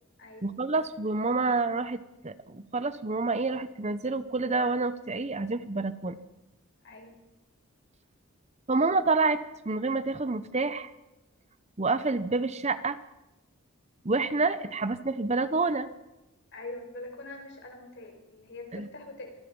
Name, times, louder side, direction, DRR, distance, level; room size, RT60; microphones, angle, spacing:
voice 1, 0.4-6.2 8.7-9.4 9.6-10.9 11.8-13.0 14.0-15.9 18.7-18.9, right 3 dB, 30° right, 13 dB, 0.8 m, -28 dB
voice 2, 16.5-19.4, left 2 dB, 55° left, 3 dB, 5.5 m, -43 dB
25.5 x 19.0 x 5.4 m, 0.98 s
head